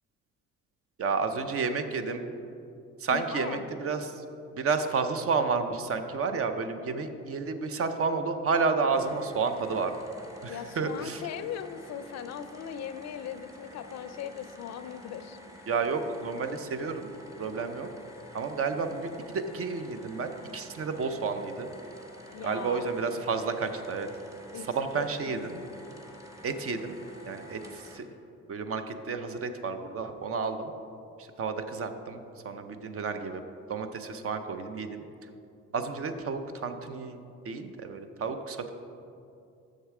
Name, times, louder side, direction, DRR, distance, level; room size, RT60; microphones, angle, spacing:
voice 1, 1.0-2.2 3.0-4.2 4.5-9.9 10.4-11.2 15.7-17.1 17.4-17.9 18.3-21.7 22.4-24.1 24.8-25.6 26.4-26.9 27.3-28.1 28.5-30.7 31.4-33.4 33.7-35.0 35.7-37.2 37.5-38.7, right 4 dB, 50° right, 8 dB, 0.6 m, -31 dB
voice 2, 3.1-3.6 10.5-15.4 22.3-23.2 24.5-25.8, left 9 dB, 60° left, 12 dB, 0.4 m, -40 dB
sound 1, 8.9-28.0, equal, 10° right, 1.0 m, -49 dB
6.6 x 6.5 x 4.8 m, 2.6 s
cardioid pair, 90°, 30 cm